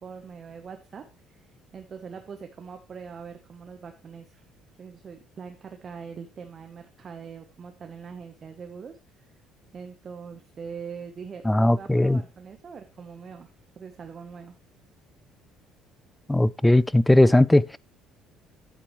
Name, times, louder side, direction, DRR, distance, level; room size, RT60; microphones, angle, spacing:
voice 1, 0.0-1.5 1.7-4.5 4.8-9.0 9.7-13.5 13.8-14.5, right 6 dB, 40° right, 1.0 m, -42 dB
voice 2, 11.4-12.2 16.3-17.8, left 1 dB, 10° left, 0.4 m, -18 dB
10.0 x 8.9 x 3.1 m
cardioid pair, 115°, 0 cm